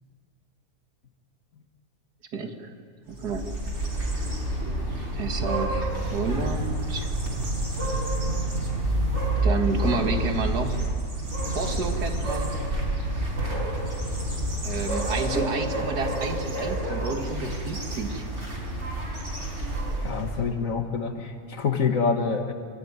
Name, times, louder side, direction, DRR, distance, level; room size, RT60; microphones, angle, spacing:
voice 1, 2.3-2.7 3.1-3.5 5.1-7.1 9.4-10.8 11.5-12.5 14.6-18.2, right 4 dB, 85° right, 6 dB, 2.4 m, -30 dB
sound 1, 3.1-20.4, right 1 dB, 50° right, 5.1 m, -28 dB
voice 2, 20.0-22.5, left 5 dB, 55° left, 6 dB, 2.1 m, -26 dB
27.0 x 15.0 x 9.6 m, 2.3 s
omnidirectional pair, 1.7 m